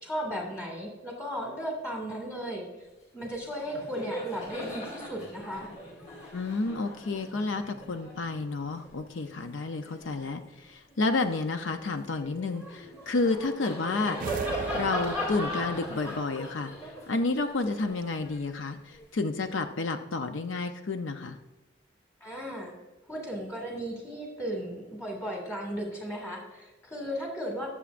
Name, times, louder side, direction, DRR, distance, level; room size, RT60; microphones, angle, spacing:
voice 1, 0.0-2.7 3.1-5.7 22.2-22.7 23.1-27.7, equal, 15° left, -1 dB, 2.0 m, -35 dB
Laughter, 3.2-3.4 3.7-10.4 10.9-19.1, left 1 dB, 35° left, 2.4 m, -39 dB
voice 2, 6.3-14.4 14.7-21.4, left 3 dB, 75° left, 7 dB, 0.6 m, -31 dB
sound 1, 14.2-15.8, right 6 dB, 45° right, 0.4 m, -35 dB
20.5 x 7.0 x 2.5 m, 1.1 s
head